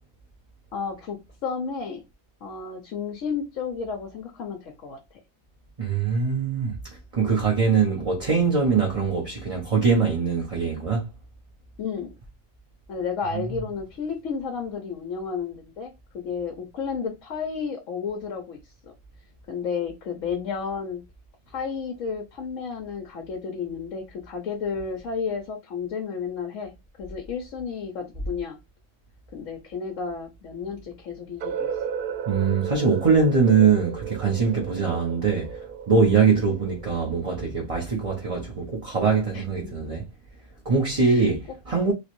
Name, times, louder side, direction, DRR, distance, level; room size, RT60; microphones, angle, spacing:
voice 1, 0.7-2.0 2.4-5.2 7.2-7.4 11.8-12.1 12.9-18.9 19.5-21.0 21.5-28.6 29.3-31.7 39.3-39.9 41.0-41.3, left 6 dB, 65° left, 1.1 m, -32 dB
voice 2, 5.8-6.7 7.1-11.1 32.3-35.6 35.9-40.0 40.6-41.9, right 5 dB, 30° right, 0.9 m, -22 dB
sound 1, 31.4-37.3, right 7 dB, 65° right, 0.5 m, -34 dB
3.2 x 3.1 x 3.0 m
omnidirectional pair, 1.5 m